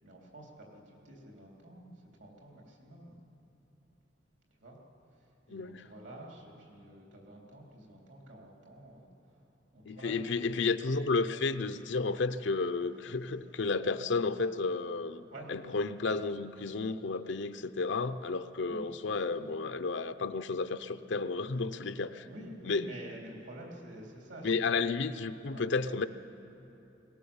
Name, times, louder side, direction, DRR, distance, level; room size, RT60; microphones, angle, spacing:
voice 1, 0.0-0.7 1.0-1.9 2.2-3.2 4.6-4.8 5.2-9.1 9.7-10.2 13.2-13.4 15.3-15.5 18.7-19.5 22.2-24.5 25.5-25.7, right 1 dB, 70° right, -1 dB, 3.7 m, -49 dB
voice 2, 5.5-5.9 9.9-22.3 22.6-22.8 24.4-26.1, left 4 dB, 65° left, 10 dB, 0.6 m, -32 dB
20.0 x 18.5 x 7.2 m, 2.9 s
head